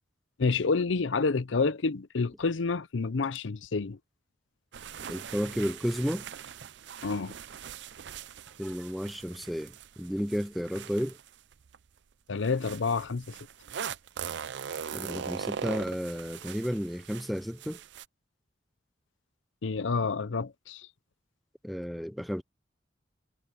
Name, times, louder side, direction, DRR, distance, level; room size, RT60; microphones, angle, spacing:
voice 1, 0.4-4.0 7.0-7.3 12.3-13.3 19.6-20.9, left 4 dB, 90° left, 0.6 m, -28 dB
sound 1, 4.7-11.8 12.4-18.1, right 7 dB, 70° right, 0.5 m, -41 dB
voice 2, 5.1-6.3 8.6-11.2 14.9-17.8 21.6-22.4, equal, ahead, 0.6 m, -32 dB
head